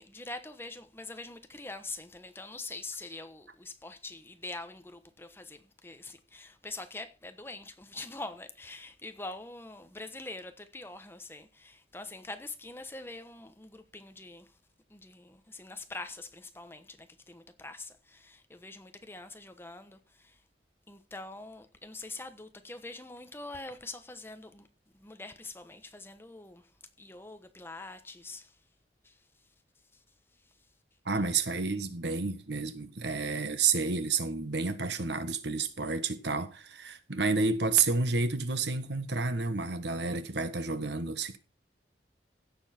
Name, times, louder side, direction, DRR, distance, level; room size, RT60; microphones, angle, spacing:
voice 1, 0.0-14.6 14.9-20.4 20.9-24.7 24.9-26.7 27.0-28.6 29.0-29.2 29.9-30.0, left 2 dB, 15° left, 1.1 m, -44 dB
voice 2, 31.0-41.4, right 4 dB, 75° right, 1.3 m, -30 dB
16.0 x 7.2 x 4.4 m
head